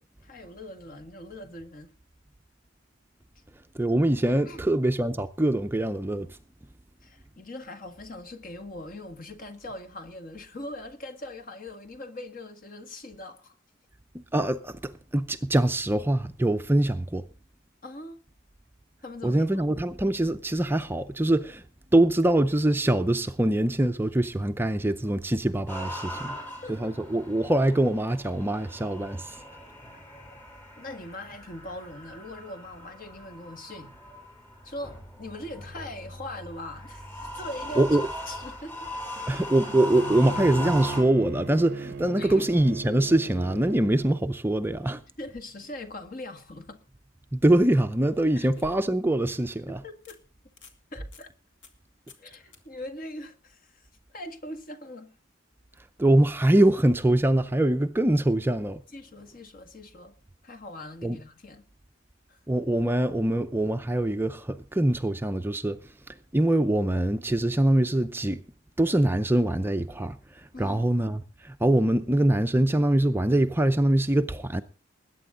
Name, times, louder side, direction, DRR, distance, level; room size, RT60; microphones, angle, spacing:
voice 1, 0.2-1.9 4.5-4.7 7.0-13.6 17.8-18.2 19.0-19.6 26.3-26.9 30.8-33.9 34.6-38.0 38.3-39.2 42.2-42.5 45.2-46.8 48.4-48.5 49.4-50.2 50.9-51.3 52.2-53.8 54.1-55.1 58.9-60.2 60.4-61.7 62.3-62.4 70.5-70.8, left 1 dB, 45° left, 1.8 m, -41 dB
voice 2, 3.8-6.3 14.3-17.2 19.2-21.6 21.9-26.4 26.7-29.4 37.8-38.0 39.3-45.0 47.3-49.8 56.0-58.8 61.0-61.2 62.5-65.8 66.3-68.4 68.8-70.2 70.6-74.6, right 1 dB, 10° right, 0.5 m, -23 dB
sound 1, 25.7-41.0, equal, 10° left, 6.9 m, -39 dB
Bowed string instrument, 39.7-44.2, right 4 dB, 55° right, 0.6 m, -37 dB
sound 2, 47.9-49.2 49.6-49.7 50.1-50.2 50.5-50.8 51.1-51.3 51.6-51.8 52.1-52.3 52.5-52.6 55.7-55.8, left 2 dB, 65° left, 2.5 m, -51 dB
21.0 x 9.2 x 3.8 m
head